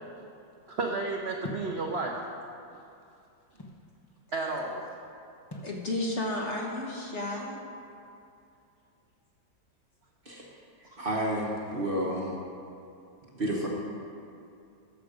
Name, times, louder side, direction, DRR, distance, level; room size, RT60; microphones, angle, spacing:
voice 1, 0.7-2.1 4.3-4.9 10.8-11.0, right 3 dB, 55° right, 0 dB, 0.7 m, -32 dB
sound 1, 1.4-1.8 2.7-3.9 5.5-5.8, left 1 dB, 25° left, 0.5 m, -41 dB
voice 2, 5.6-7.6 13.4-13.6, left 1 dB, 45° left, -1 dB, 1.1 m, -32 dB
voice 3, 11.0-12.3 13.3-13.7, right 1 dB, 35° right, -2 dB, 1.0 m, -30 dB
13.0 x 6.9 x 5.0 m, 2.5 s
omnidirectional pair, 2.0 m